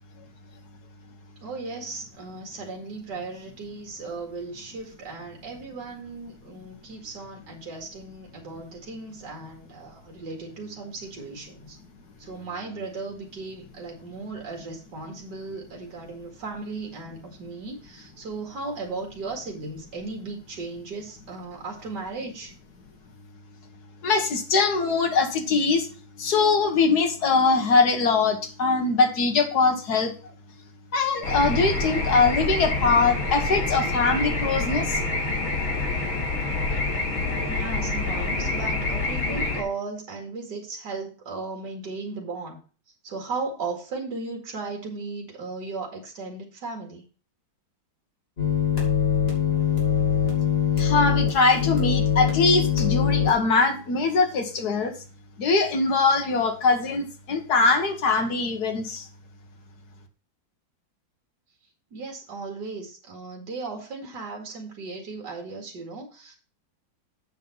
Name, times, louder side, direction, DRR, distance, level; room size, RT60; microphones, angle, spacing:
voice 1, 1.4-11.8 12.2-22.5 37.5-42.6 43.0-47.0 61.9-66.4, right 3 dB, 55° right, 1 dB, 2.8 m, -36 dB
voice 2, 24.0-25.9 26.2-30.1 30.9-35.0 50.8-54.9 55.4-59.1, left 4 dB, 55° left, 5 dB, 1.8 m, -22 dB
sound 1, 31.2-39.6, left 2 dB, 75° left, 3.6 m, -27 dB
sound 2, 48.4-53.3, left 8 dB, 30° left, 3.3 m, -23 dB
8.3 x 5.7 x 5.6 m, 0.38 s
omnidirectional pair, 2.2 m